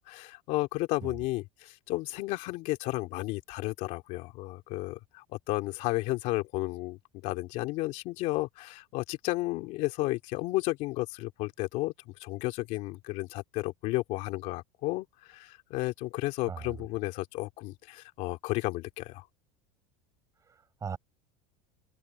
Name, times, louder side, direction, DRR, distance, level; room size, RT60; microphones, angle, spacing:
voice 1, 0.0-19.3, left 20 dB, 55° left, 2.7 m, -33 dB
voice 2, 20.5-21.0, right 6 dB, 20° right, 7.8 m, -39 dB
supercardioid pair, 140°, 14 cm